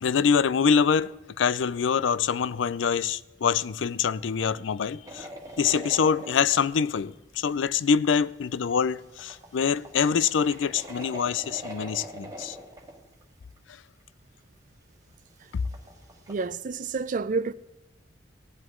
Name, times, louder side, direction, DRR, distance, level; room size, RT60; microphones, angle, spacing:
voice 1, 0.0-5.3 5.6-12.6, left 6 dB, 80° left, 0.4 m, -25 dB
sound 1, 5.0-6.8 7.5-7.6 8.7-13.2 13.6-13.7 15.4-16.5, right 1 dB, 20° right, 1.7 m, -43 dB
voice 2, 16.3-17.5, right 4 dB, 45° right, 0.4 m, -29 dB
17.0 x 11.0 x 3.7 m
head